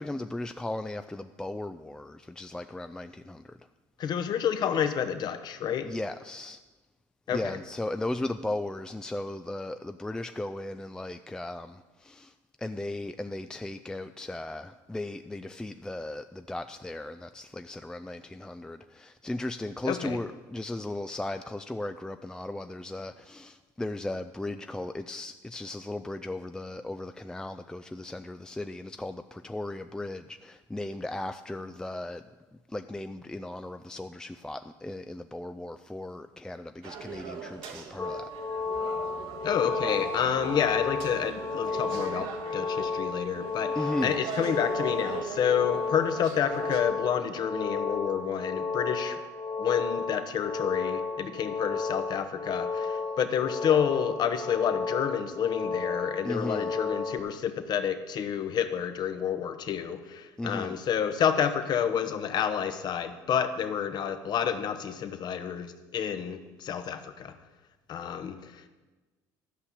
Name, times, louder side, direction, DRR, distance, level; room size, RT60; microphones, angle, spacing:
voice 1, 0.0-3.6 5.8-6.6 7.3-12.3 12.6-32.2 32.7-38.3 43.8-44.2 56.2-56.7 60.4-60.8, left 2 dB, 10° left, 8 dB, 0.4 m, -36 dB
voice 2, 4.0-5.9 7.3-7.4 19.8-20.2 39.4-49.2 49.6-67.3 67.9-68.7, left 8 dB, 50° left, 9 dB, 1.1 m, -29 dB
sound 1, 36.8-46.8, right 6 dB, 70° right, 1.4 m, -40 dB
sound 2, 38.0-57.2, left 4 dB, 30° left, 1.4 m, -33 dB
12.0 x 5.7 x 8.2 m, 1.2 s
supercardioid pair, 80°, 9 cm